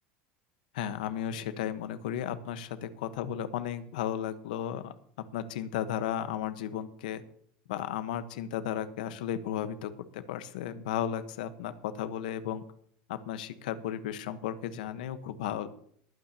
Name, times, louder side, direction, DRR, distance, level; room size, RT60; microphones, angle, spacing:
voice 1, 0.7-4.9 5.3-7.2 7.7-12.6 13.1-15.7, left 10 dB, 85° left, 11 dB, 1.1 m, -34 dB
21.5 x 8.9 x 2.8 m, 0.64 s
supercardioid pair, 150°, 4 cm